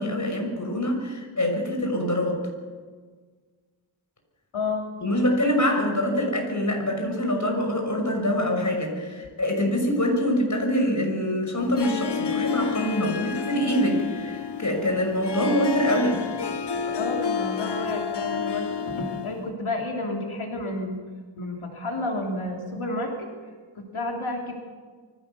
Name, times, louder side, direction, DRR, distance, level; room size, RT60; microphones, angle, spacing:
voice 1, 0.0-2.4 5.0-16.2, equal, 35° left, 2 dB, 6.3 m, -25 dB
voice 2, 4.5-4.9 16.7-21.0 21.4-23.3 23.7-24.6, left 2 dB, 75° left, 0 dB, 3.2 m, -31 dB
Harp, 11.6-19.5, left 6 dB, 55° left, 1.1 m, -30 dB
23.5 x 16.5 x 7.0 m, 1.5 s
wide cardioid pair, 90°, 50 cm